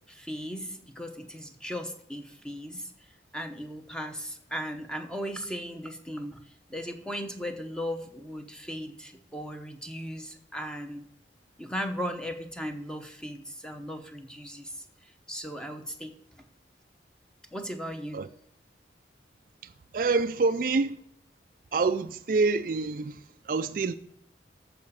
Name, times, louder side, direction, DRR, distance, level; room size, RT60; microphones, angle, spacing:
voice 1, 0.1-2.9 3.3-6.4 6.7-11.0 11.6-14.7 15.3-16.1 17.5-18.2, equal, 5° left, 0.9 m, -37 dB
voice 2, 19.9-21.0 21.7-23.2 23.5-23.9, right 3 dB, 50° right, 0.4 m, -26 dB
14.0 x 5.0 x 7.1 m
head